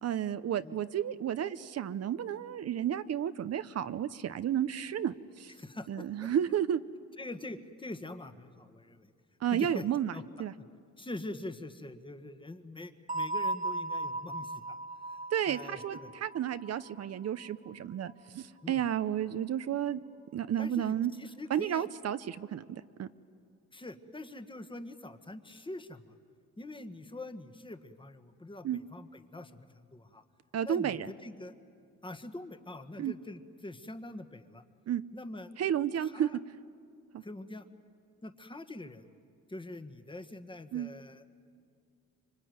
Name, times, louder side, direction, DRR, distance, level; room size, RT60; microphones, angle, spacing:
voice 1, 0.0-5.5 5.9-6.8 9.4-10.1 10.4-10.5 15.3-20.0 20.3-21.1 21.5-23.1 28.6-28.8 30.5-31.1 33.0-33.1 34.9-35.0 35.6-36.3 37.1-37.2 40.7-40.9, right 10 dB, 55° right, 13 dB, 0.8 m, -32 dB
voice 2, 5.6-6.3 7.2-9.1 9.5-9.8 10.1-10.2 11.0-14.8 15.0-15.2 15.5-16.1 18.6-18.8 20.6-21.9 23.7-26.1 26.6-30.2 30.6-31.5 32.0-34.6 35.1-35.5 36.0-36.4 37.2-37.7 38.2-39.0 39.5-41.2, left 2 dB, 15° left, 9 dB, 1.6 m, -44 dB
sound 1, 13.1-17.7, right 2 dB, 25° right, 1.8 m, -37 dB
25.0 x 25.0 x 9.5 m, 2.3 s
cardioid pair, 90°, 30 cm